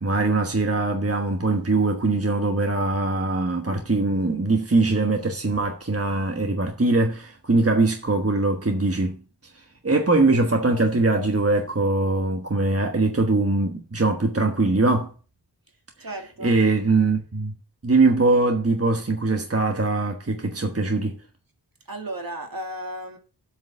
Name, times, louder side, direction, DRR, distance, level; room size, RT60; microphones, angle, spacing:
voice 1, 0.0-9.2 9.8-15.1 16.4-17.5 17.8-21.2, right 2 dB, 35° right, 1.3 m, -22 dB
voice 2, 16.0-16.6 21.9-23.2, right 1 dB, 55° right, 2.2 m, -34 dB
8.1 x 5.1 x 7.5 m
wide cardioid pair, 50°, 42 cm